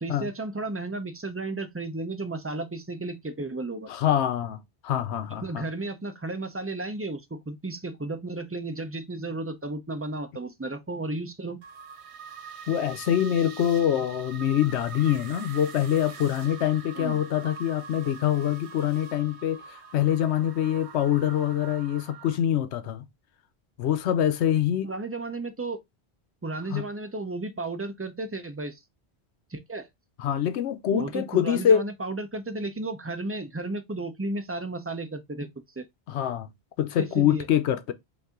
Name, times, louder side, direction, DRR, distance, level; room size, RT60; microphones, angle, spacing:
voice 1, 0.0-3.9 5.4-11.6 16.9-17.2 24.8-25.8 26.4-28.8 29.5-29.9 30.9-35.5 35.8-35.9 37.0-37.5, right 2 dB, 20° right, 0.5 m, -33 dB
voice 2, 3.9-5.6 12.7-19.6 19.9-23.1 23.8-24.9 26.7-26.8 30.2-31.8 36.1-36.5 36.8-37.9, left 10 dB, 85° left, 1.0 m, -25 dB
sound 1, 11.6-22.4, right 6 dB, 80° right, 1.1 m, -43 dB
5.4 x 2.7 x 3.6 m
omnidirectional pair, 1.1 m